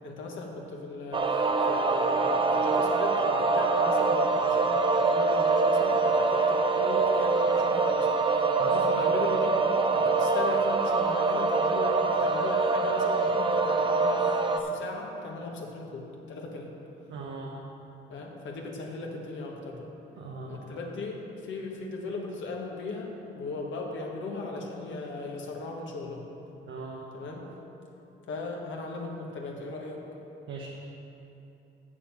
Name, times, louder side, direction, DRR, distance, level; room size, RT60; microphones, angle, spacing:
voice 1, 0.0-4.7 4.9-9.6 9.9-16.7 18.1-19.9 20.4-26.2 27.1-27.5 28.3-30.0, left 3 dB, 70° left, 0 dB, 1.5 m, -38 dB
sound 1, 1.1-14.6, right 3 dB, 25° right, 0.7 m, -24 dB
voice 2, 17.1-17.6 20.2-20.6 26.7-27.1 30.5-30.7, right 4 dB, 85° right, -2 dB, 1.0 m, -39 dB
7.0 x 6.9 x 7.3 m, 2.9 s
cardioid pair, 90°, 20 cm